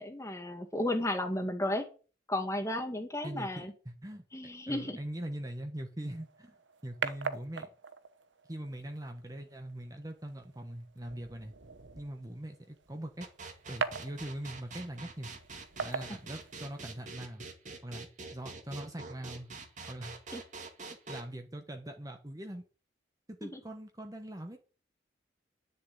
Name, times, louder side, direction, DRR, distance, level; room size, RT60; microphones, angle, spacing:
voice 1, 0.0-1.9 2.3-3.7 4.3-5.0 16.1-16.2 20.3-20.4 23.4-23.6, left 1 dB, 15° left, 2.0 m, -33 dB
voice 2, 3.2-4.2 4.7-6.6 6.8-7.7 8.5-11.5 12.0-13.3 13.7-15.3 15.8-17.5 17.8-19.5 19.9-20.1 20.9-22.6 23.3-24.6, right 1 dB, 20° right, 1.2 m, -42 dB
sound 1, 6.0-17.0, right 5 dB, 90° right, 1.0 m, -42 dB
sound 2, 13.2-21.2, right 3 dB, 40° right, 2.1 m, -45 dB
10.5 x 6.8 x 8.7 m
head